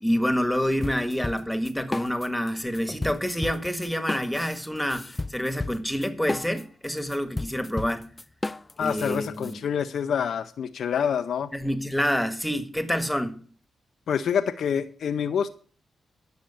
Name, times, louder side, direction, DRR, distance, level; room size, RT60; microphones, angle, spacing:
voice 1, 0.0-8.1 8.8-9.6 11.5-13.4, equal, 5° left, 1.6 m, -27 dB
sound 1, 0.8-2.5 2.7-9.5, left 2 dB, 25° left, 0.5 m, -33 dB
voice 2, 8.8-11.5 14.1-15.5, left 7 dB, 75° left, 0.5 m, -27 dB
10.5 x 6.4 x 7.0 m
supercardioid pair, 45°, 0 cm